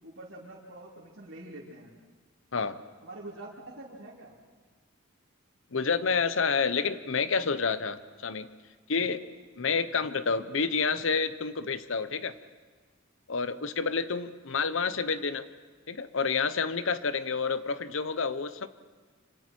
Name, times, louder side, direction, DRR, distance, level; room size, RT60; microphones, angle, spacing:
voice 1, 0.0-1.9 3.0-4.3 9.0-9.2 9.6-9.8 13.4-13.7, right 2 dB, 65° right, -6 dB, 3.0 m, -46 dB
voice 2, 5.7-8.5 8.9-9.2 9.6-12.3 13.3-15.5 15.9-18.7, left 5 dB, 70° left, 13 dB, 0.9 m, -29 dB
26.5 x 25.5 x 4.6 m, 1.4 s
head